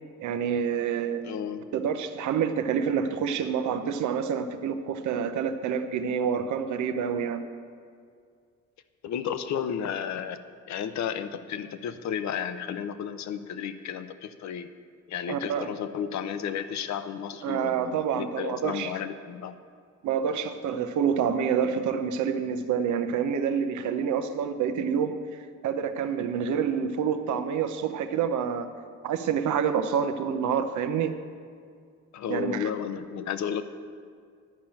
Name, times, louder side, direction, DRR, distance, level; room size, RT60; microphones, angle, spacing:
voice 1, 0.2-1.2 1.7-7.4 15.3-15.7 17.4-18.9 20.0-25.1 25.6-28.7 29.0-31.1 32.3-32.7, right 7 dB, 75° right, 8 dB, 0.8 m, -27 dB
voice 2, 1.2-1.6 9.0-10.4 10.7-14.7 15.1-19.5 32.1-33.6, left 8 dB, 65° left, 11 dB, 0.7 m, -33 dB
11.0 x 5.7 x 8.8 m, 2.2 s
cardioid pair, 90°, 30 cm